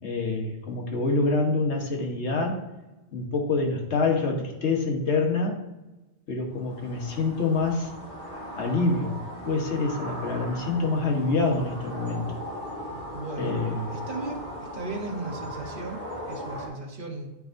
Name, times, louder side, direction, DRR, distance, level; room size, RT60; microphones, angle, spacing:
voice 1, 0.0-2.7 3.1-5.6 6.3-7.9 8.6-9.2 9.4-12.3 13.4-13.9, left 3 dB, 80° left, 1 dB, 1.5 m, -26 dB
sound 1, 6.5-16.7, equal, 45° left, 2.4 m, -38 dB
voice 2, 13.1-13.6 13.9-14.5 14.7-17.3, right 3 dB, 50° right, 2 dB, 1.1 m, -36 dB
11.0 x 4.7 x 2.6 m, 1.0 s
omnidirectional pair, 1.1 m